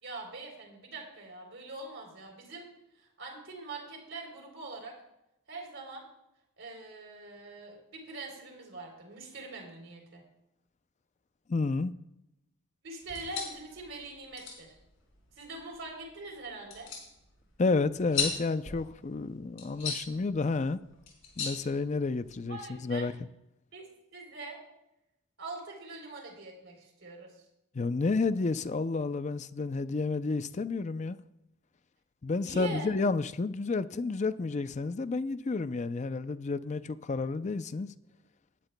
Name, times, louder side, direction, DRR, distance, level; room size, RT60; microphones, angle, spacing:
voice 1, 0.0-2.7 3.0-4.9 5.5-6.0 6.6-10.2 12.8-14.7 15.4-16.9 22.5-23.1 23.7-23.8 24.1-24.6 25.4-27.3 32.4-32.9, right 2 dB, 60° right, 3.5 m, -43 dB
voice 2, 11.5-11.9 17.6-20.8 21.4-23.1 27.7-31.2 32.2-37.9, left 3 dB, 35° left, 0.4 m, -30 dB
sound 1, 13.0-22.5, left 6 dB, 65° left, 4.9 m, -40 dB
19.5 x 12.0 x 2.2 m
head